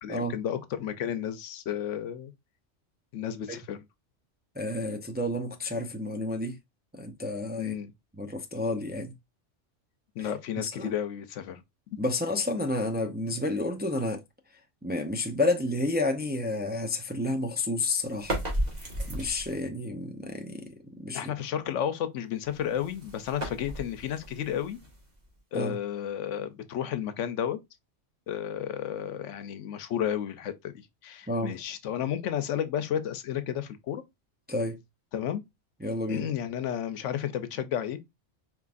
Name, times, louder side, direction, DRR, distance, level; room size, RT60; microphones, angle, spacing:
voice 1, 0.0-2.3 3.1-3.8 7.6-7.9 10.2-11.6 11.9-12.0 21.1-24.8 25.5-27.6 28.3-34.0 35.1-35.4 36.1-38.0, left 9 dB, 85° left, 1.0 m, -32 dB
voice 2, 4.6-6.6 6.9-7.7 8.1-9.1 10.2-10.3 10.6-10.9 12.0-14.2 14.8-18.3 19.1-20.7 21.0-21.2 25.5-25.8 31.3-31.6 34.5-34.8 35.8-36.3, left 2 dB, 15° right, 0.4 m, -30 dB
sound 1, 18.1-19.7 22.4-25.4, right 1 dB, 35° right, 1.7 m, -35 dB
4.4 x 3.6 x 2.4 m
omnidirectional pair, 1.2 m